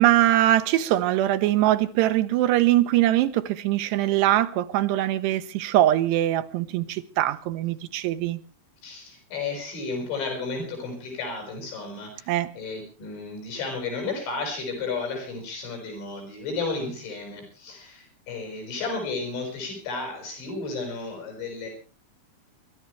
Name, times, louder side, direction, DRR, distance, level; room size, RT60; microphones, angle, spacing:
voice 1, 0.0-8.4 12.3-12.5, right 14 dB, 75° right, 2.9 m, -22 dB
voice 2, 8.8-21.7, left 3 dB, 80° left, 7.8 m, -33 dB
28.0 x 12.5 x 3.3 m
omnidirectional pair, 5.3 m